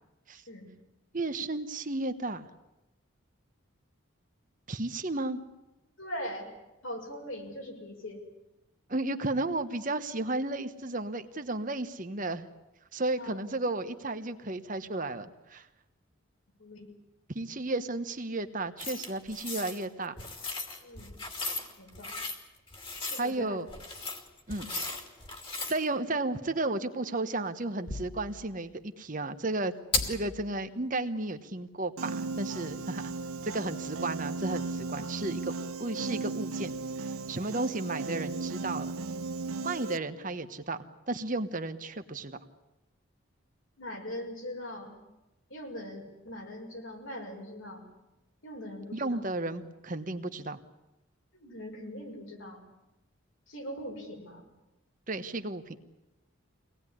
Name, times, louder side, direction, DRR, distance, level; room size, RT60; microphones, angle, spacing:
voice 1, 1.1-2.5 4.7-5.4 8.9-12.5 12.9-15.7 17.3-20.1 23.2-23.7 24.5-24.8 25.7-29.7 30.1-33.0 33.4-35.5 35.8-38.9 39.6-40.8 41.1-42.4 48.9-50.6 55.1-55.8, right 2 dB, 40° right, 9 dB, 1.1 m, -33 dB
voice 2, 6.0-6.5 6.8-8.2 13.2-13.4 16.6-16.9 20.8-21.2 21.8-22.1 23.0-23.6 43.8-45.0 45.5-47.8 48.4-49.3 51.3-52.6 53.5-54.4, equal, 70° left, 2 dB, 6.1 m, -41 dB
sound 1, 18.8-19.8 20.2-22.4 22.7-23.3 23.7-25.8 27.9-28.3 29.9-30.3, left 3 dB, 25° left, 2.6 m, -36 dB
Piano, 32.0-40.0, right 3 dB, 85° right, 0.8 m, -36 dB
24.5 x 19.0 x 10.0 m, 1.0 s
head